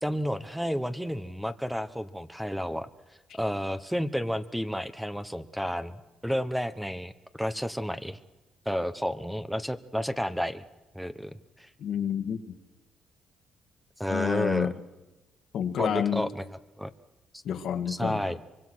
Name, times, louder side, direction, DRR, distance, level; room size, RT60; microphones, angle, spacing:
voice 1, 0.0-2.9 3.3-6.0 6.2-8.2 8.6-10.6 10.9-11.7 14.0-14.7 15.8-16.4 16.8-16.9 17.3-17.4 17.9-18.4, equal, ahead, 12 dB, 1.2 m, -31 dB
voice 2, 11.8-12.5 14.1-14.7 15.5-16.3 17.4-18.2, left 8 dB, 70° left, 9 dB, 1.9 m, -29 dB
24.5 x 23.5 x 6.3 m, 1.1 s
cardioid pair, 90°, 0 cm